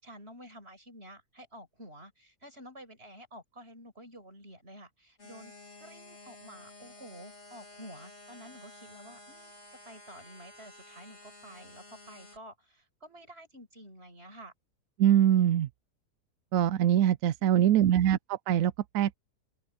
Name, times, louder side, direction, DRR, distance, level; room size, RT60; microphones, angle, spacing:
voice 1, 0.0-5.5 5.8-9.6 9.9-14.5 17.4-17.9, equal, 40° right, 7.4 m, -50 dB
sound 1, 5.2-12.4, left 2 dB, 45° left, 4.1 m, -52 dB
voice 2, 15.0-15.7 16.5-19.2, right 11 dB, 70° right, 0.9 m, -23 dB
omnidirectional pair, 1.7 m